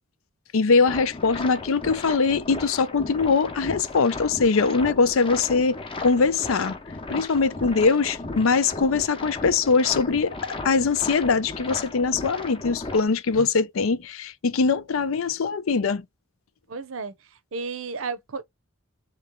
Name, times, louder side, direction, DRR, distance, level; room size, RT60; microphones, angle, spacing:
voice 1, 0.5-6.8 7.1-10.3 10.6-16.0, left 4 dB, 85° left, 0.5 m, -22 dB
sound 1, 0.9-13.1, left 3 dB, 25° left, 0.7 m, -36 dB
voice 2, 7.6-8.0 16.7-17.1 17.5-18.4, right 4 dB, 75° right, 0.7 m, -33 dB
3.3 x 3.0 x 3.6 m
head